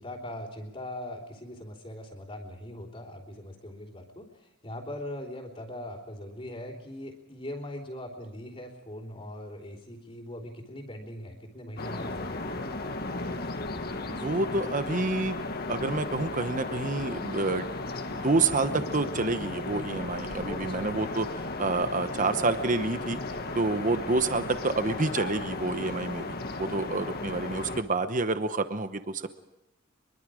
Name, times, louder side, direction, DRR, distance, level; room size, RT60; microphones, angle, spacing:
voice 1, 0.0-12.6 20.4-20.9, left 1 dB, 30° left, -7 dB, 3.5 m, -41 dB
sound 1, 11.8-27.8, left 2 dB, 50° left, 1.6 m, -35 dB
voice 2, 14.1-15.4 15.7-17.7 18.1-23.2 23.5-26.2 26.6-29.3, right 3 dB, 40° right, 10 dB, 1.0 m, -28 dB
24.0 x 23.0 x 5.0 m, 0.95 s
head